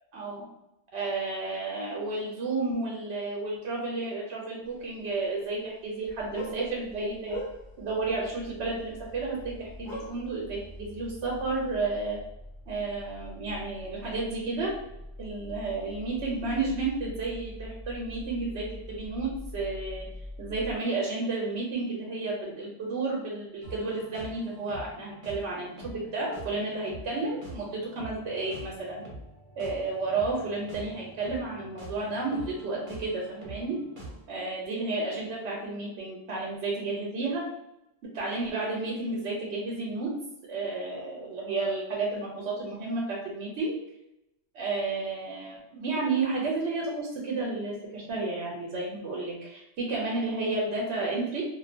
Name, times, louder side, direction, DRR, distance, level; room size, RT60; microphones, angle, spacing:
voice 1, 0.1-0.4 0.9-7.4 7.8-12.2 12.7-14.7 15.2-20.1 20.4-29.0 29.6-33.8 34.3-37.4 38.1-40.1 40.5-43.8 44.5-51.4, right 3 dB, 75° right, -3 dB, 0.9 m, -32 dB
sound 1, 4.6-5.6 5.8-7.9 8.7-9.2 9.4-9.5 9.8-10.8 11.1-11.2 11.8-11.9, equal, 70° left, 1.3 m, -40 dB
sound 2, 6.0-20.7, left 1 dB, 30° left, 1.0 m, -44 dB
sound 3, 23.6-34.2, right 1 dB, 50° right, 0.9 m, -45 dB
2.4 x 2.2 x 2.5 m, 0.86 s
omnidirectional pair, 1.2 m